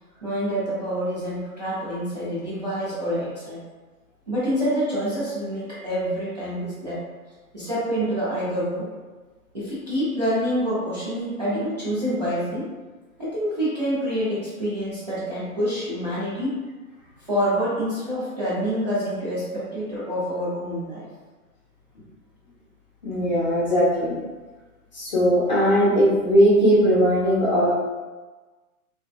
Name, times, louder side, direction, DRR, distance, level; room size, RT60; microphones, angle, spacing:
voice 1, 0.2-3.6 4.3-7.0 7.5-8.9 9.5-12.7 13.2-16.6 17.2-21.1, equal, 30° right, -11 dB, 0.4 m, -27 dB
voice 2, 23.0-24.2 24.9-27.7, equal, 30° left, -8 dB, 0.5 m, -19 dB
2.6 x 2.2 x 2.2 m, 1.3 s
hypercardioid pair, 155°, 45 cm